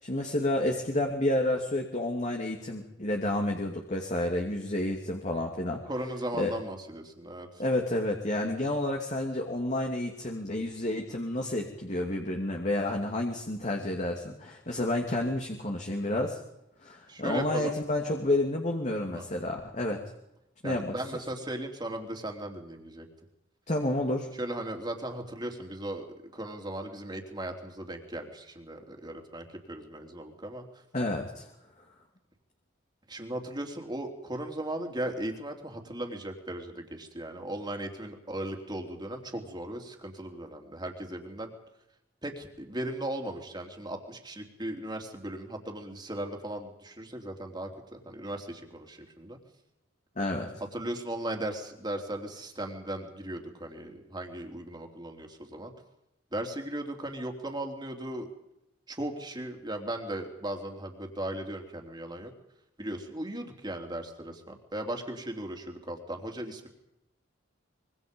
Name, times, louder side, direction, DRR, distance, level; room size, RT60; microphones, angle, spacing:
voice 1, 0.0-5.8 6.3-6.5 7.6-16.4 16.8-20.0 20.6-20.9 23.7-24.3 30.9-31.5 50.2-50.5, left 1 dB, 40° left, 1 dB, 2.8 m, -30 dB
voice 2, 5.7-7.5 17.1-17.7 19.1-19.3 20.6-23.1 24.4-26.1 26.3-30.6 33.1-41.5 42.2-49.4 50.7-55.7 56.3-58.3 58.9-62.3 62.8-66.7, right 1 dB, 20° right, 3 dB, 3.5 m, -37 dB
25.5 x 24.0 x 5.4 m, 0.84 s
head